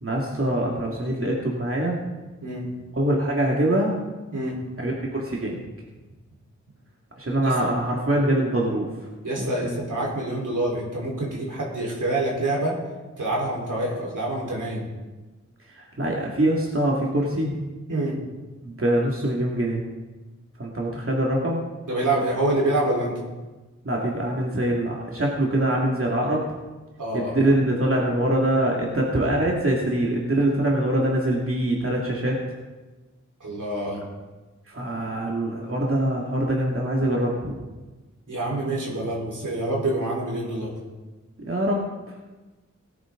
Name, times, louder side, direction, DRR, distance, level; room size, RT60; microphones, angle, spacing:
voice 1, 0.0-2.0 3.0-3.9 4.8-5.6 7.2-8.9 9.4-9.8 15.8-17.5 18.6-19.8 20.6-21.6 23.8-26.4 27.1-32.4 34.7-37.6 41.5-41.9, right 1 dB, 45° right, -3 dB, 2.4 m, -24 dB
voice 2, 9.2-12.7 13.2-14.9 17.9-18.2 21.9-23.2 27.0-27.5 33.4-34.0 38.3-40.7, right 1 dB, 80° right, -4 dB, 4.4 m, -26 dB
17.5 x 10.0 x 3.9 m, 1.2 s
cardioid pair, 45°, 31 cm